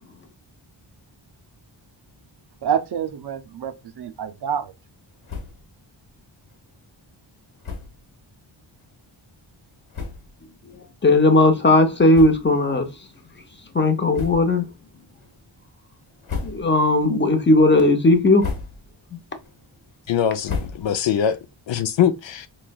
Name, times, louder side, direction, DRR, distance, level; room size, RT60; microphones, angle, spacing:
voice 1, 2.6-4.7, right 8 dB, 60° right, 0.5 m, -27 dB
sound 1, 5.2-5.7 6.1-6.2 6.4-6.6 7.6-8.0 8.8-8.9 9.6-9.7 9.9-10.4 11.0-11.1 12.1-12.7 13.1-13.3 14.1-14.7 15.1-15.6 16.0-16.9 17.3-17.7 18.2-19.0 19.4-21.2, left 5 dB, 90° left, 1.4 m, -34 dB
voice 2, 11.0-12.9 13.7-14.7 16.4-18.5 19.1-19.2, left 2 dB, 25° left, 0.6 m, -17 dB
voice 3, 20.1-21.4 21.7-22.5, left 9 dB, 70° left, 0.5 m, -22 dB
4.3 x 3.1 x 2.3 m
wide cardioid pair, 150°, 47 cm